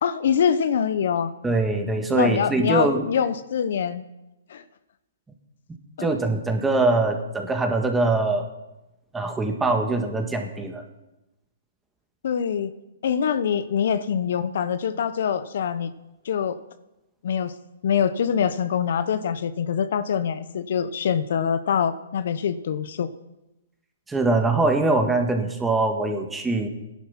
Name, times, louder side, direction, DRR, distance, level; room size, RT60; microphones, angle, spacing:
voice 1, 0.0-1.3 2.1-4.0 4.5-4.6 6.0-6.1 12.2-12.7 13.0-15.9 16.2-16.6 17.2-17.5 17.8-23.1, left 7 dB, 60° left, 13 dB, 0.9 m, -24 dB
voice 2, 1.4-3.0 6.0-8.5 9.1-10.8 24.1-26.7, right 2 dB, 10° right, 4 dB, 1.8 m, -23 dB
16.0 x 11.0 x 5.8 m, 0.97 s
hypercardioid pair, 140°, 0 cm